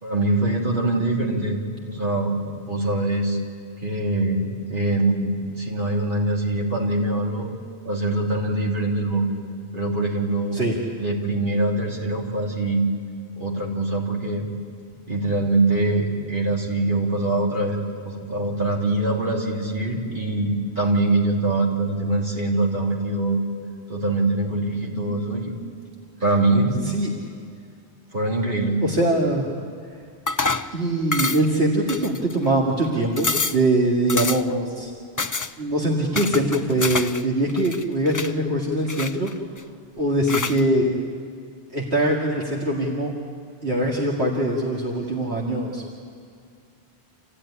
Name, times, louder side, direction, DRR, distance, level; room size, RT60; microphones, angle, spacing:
voice 1, 0.0-3.4 3.8-7.5 7.8-9.3 9.7-10.6 11.0-12.9 13.4-14.5 15.1-23.4 23.9-25.5 26.2-27.1 28.1-28.8, right 2 dB, 50° right, -2 dB, 3.5 m, -23 dB
voice 2, 28.8-29.5 30.7-34.9 35.6-39.3 40.0-40.9 41.7-43.1 43.6-45.8, right 1 dB, 70° right, -3 dB, 2.4 m, -22 dB
sound 1, 30.3-30.7 31.1-31.6 31.9-32.5 32.8-32.9 33.2-33.6 34.1-34.6 35.2-35.5 36.2-37.2 37.5-38.3 38.9-39.6 40.3-40.6, left 3 dB, 25° left, 0.4 m, -27 dB
27.0 x 15.5 x 10.0 m, 2.3 s
omnidirectional pair, 1.1 m